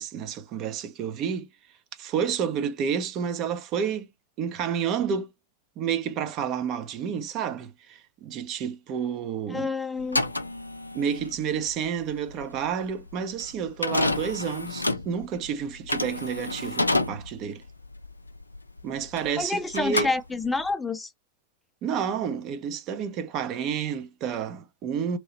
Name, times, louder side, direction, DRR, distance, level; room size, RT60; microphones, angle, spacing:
voice 1, 0.0-1.5 2.0-4.1 4.4-5.3 5.8-9.7 10.9-17.6 18.8-20.1 21.8-25.2, right 7 dB, 35° right, 0.5 m, -30 dB
voice 2, 9.5-10.3 19.4-21.1, left 3 dB, 10° left, 0.5 m, -28 dB
sound 1, 10.0-19.4 19.7-20.7, left 2 dB, 85° left, 0.4 m, -29 dB
2.9 x 2.7 x 2.9 m
figure-of-eight pair, 90°, 0 cm